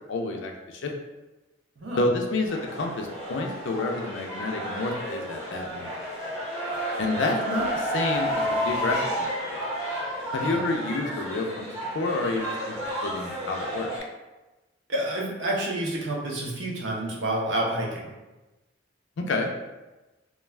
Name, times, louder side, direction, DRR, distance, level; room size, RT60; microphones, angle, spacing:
voice 1, 0.1-0.9 2.0-5.9 7.0-9.6 10.3-11.7 11.9-12.8 13.0-13.9 19.3-19.5, left 2 dB, 85° left, 2 dB, 0.4 m, -29 dB
voice 2, 1.8-2.1 10.4-10.6 14.9-18.1, right 1 dB, 80° right, -2 dB, 0.7 m, -29 dB
sound 1, 2.5-14.0, equal, 15° left, 0.8 m, -31 dB
2.3 x 2.2 x 3.2 m, 1.1 s
head